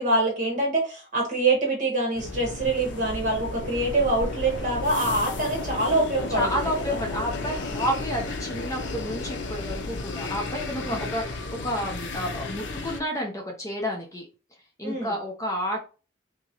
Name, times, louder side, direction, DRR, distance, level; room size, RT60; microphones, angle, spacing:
voice 1, 0.0-7.0 10.8-11.1 14.8-15.1, right 2 dB, 40° right, 0 dB, 1.4 m, -25 dB
sound 1, 2.1-13.0, left 3 dB, 75° left, 0.6 m, -33 dB
voice 2, 6.3-14.3 14.8-15.9, equal, 15° left, 0 dB, 0.7 m, -30 dB
3.6 x 2.9 x 2.9 m, 0.33 s
head